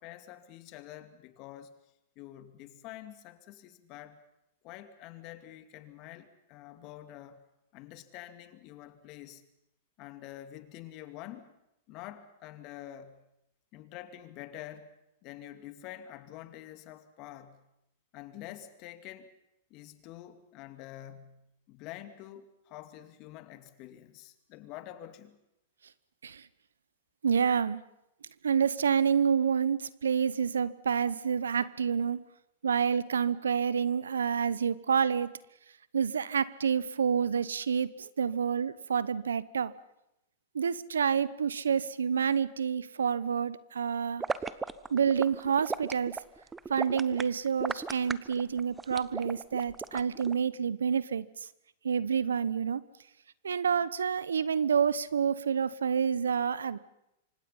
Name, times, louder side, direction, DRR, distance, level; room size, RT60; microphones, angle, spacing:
voice 1, 0.0-1.7 2.2-4.2 4.6-7.4 7.7-9.5 10.0-11.5 11.9-13.2 13.7-14.9 15.2-17.6 18.1-19.3 19.7-25.4, left 13 dB, 45° left, 9 dB, 2.4 m, -47 dB
voice 2, 27.2-27.8 28.4-32.2 32.6-35.3 35.9-39.7 40.5-44.2 44.9-46.2 46.7-51.3 51.8-52.8 53.4-56.8, right 7 dB, 80° right, 19 dB, 0.9 m, -28 dB
sound 1, 44.2-50.3, right 4 dB, 15° right, 1.0 m, -36 dB
26.5 x 25.0 x 5.7 m, 0.85 s
hypercardioid pair, 105°, 0 cm